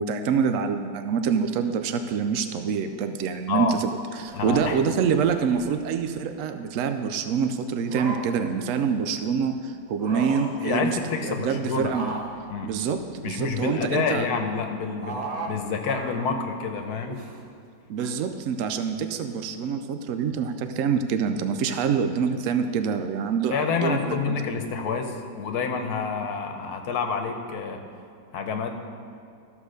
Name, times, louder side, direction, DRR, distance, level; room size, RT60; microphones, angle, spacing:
voice 1, 0.0-12.1 12.6-14.3 17.9-24.4, right 6 dB, 85° right, 8 dB, 0.7 m, -26 dB
sound 1, 4.2-5.9 7.7-8.5 9.9-10.7 11.8-13.6 15.0-15.6 15.8-16.4 17.0-17.4 18.0-18.1, right 3 dB, 55° right, 1.4 m, -37 dB
voice 2, 4.3-4.8 10.6-12.0 12.5-12.7 13.2-15.2 15.5-17.2 23.5-27.8 28.3-28.8, left 5 dB, 65° left, 4 dB, 1.3 m, -28 dB
13.5 x 4.8 x 6.5 m, 2.5 s
omnidirectional pair, 1.9 m